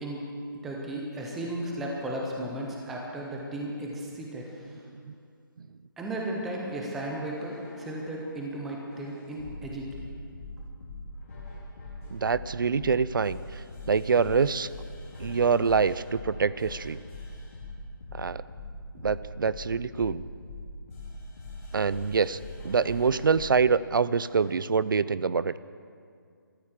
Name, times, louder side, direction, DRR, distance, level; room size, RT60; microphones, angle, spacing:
voice 1, 0.6-4.7 6.0-9.9, right 1 dB, ahead, -1 dB, 0.3 m, -35 dB
sound 1, 7.2-8.2 8.9-23.6 24.3-24.6, left 2 dB, 40° left, 3.9 m, -43 dB
voice 2, 12.1-14.7 15.2-17.0 18.1-18.4 18.9-20.2 21.7-25.6, right 5 dB, 65° right, 17 dB, 0.5 m, -25 dB
14.0 x 13.0 x 7.3 m, 2.3 s
hypercardioid pair, 170°, 12 cm